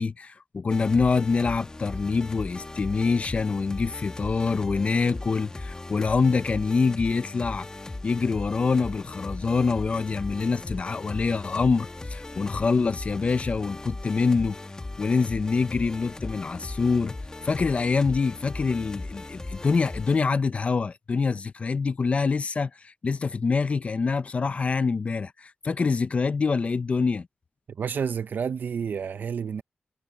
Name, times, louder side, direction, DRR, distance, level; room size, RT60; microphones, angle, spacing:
voice 1, 0.0-7.7 8.0-14.6 15.0-17.2 17.4-27.3, left 4 dB, 40° left, 0.5 m, -25 dB
sound 1, 0.7-20.2, left 2 dB, 20° left, 1.3 m, -38 dB
voice 2, 27.8-29.6, right 6 dB, 65° right, 0.6 m, -29 dB
wide cardioid pair, 155°, 3 cm